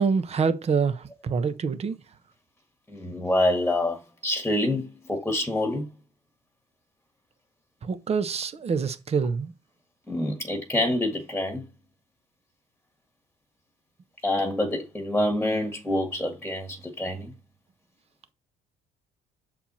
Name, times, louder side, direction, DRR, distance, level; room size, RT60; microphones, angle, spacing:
voice 1, 0.0-2.0 7.8-9.5, right 5 dB, 40° right, 1.0 m, -26 dB
voice 2, 2.9-5.9 10.1-11.6 14.2-17.3, left 1 dB, 5° left, 1.6 m, -26 dB
7.4 x 4.5 x 4.3 m
cardioid pair, 110°, 17 cm